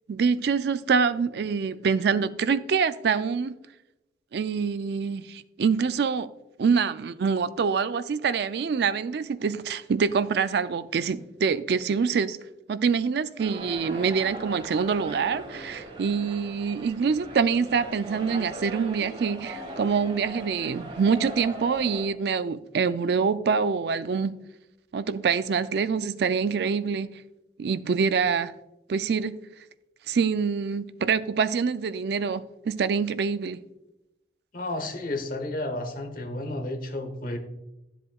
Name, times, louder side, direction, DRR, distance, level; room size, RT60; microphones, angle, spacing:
voice 1, 0.1-3.6 4.3-6.3 6.6-12.4 12.7-24.3 24.9-27.1 27.6-28.5 28.9-29.4 30.1-33.6, right 5 dB, 65° right, 0.4 m, -25 dB
sound 1, 13.4-22.1, right 1 dB, 30° right, 1.3 m, -39 dB
voice 2, 34.5-37.4, left 1 dB, 50° left, 1.1 m, -32 dB
11.5 x 7.7 x 2.3 m
head